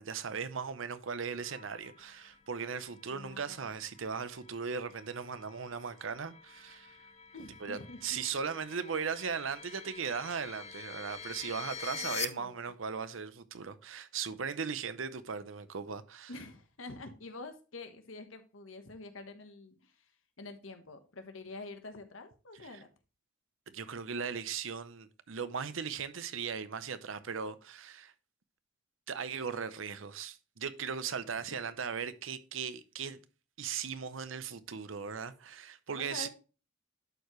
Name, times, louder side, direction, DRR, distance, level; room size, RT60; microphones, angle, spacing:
voice 1, 0.0-7.0 7.6-16.3 22.6-22.8 23.7-28.1 29.1-33.2 33.6-36.3, right 6 dB, 85° right, 0.7 m, -38 dB
sound 1, 1.3-12.3, left 7 dB, 35° left, 0.6 m, -46 dB
voice 2, 3.1-3.7 7.3-8.2 11.9-12.7 16.3-20.0 20.4-22.9 31.5-31.6 35.9-36.3, left 3 dB, 90° left, 1.2 m, -47 dB
11.5 x 4.7 x 3.1 m
head